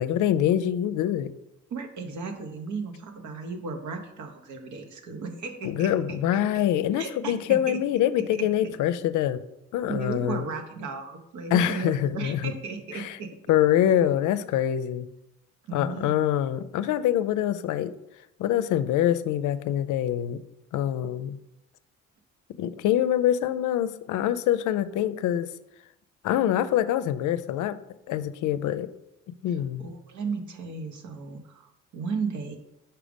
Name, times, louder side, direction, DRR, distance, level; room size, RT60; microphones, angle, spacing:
voice 1, 0.0-1.3 5.6-9.4 9.7-10.5 11.5-12.5 12.9-13.2 13.5-15.1 15.7-17.9 18.4-20.4 20.7-21.4 22.6-25.5 26.2-27.7 28.1-28.9 29.4-29.9, left 11 dB, 85° left, 13 dB, 0.5 m, -25 dB
voice 2, 1.7-6.2 6.5-6.6 6.9-7.8 8.3-8.5 9.9-13.3 15.7-16.2 29.8-32.6, right 4 dB, 70° right, 6 dB, 1.0 m, -35 dB
5.0 x 4.5 x 5.1 m, 0.85 s
cardioid pair, 90°, 30 cm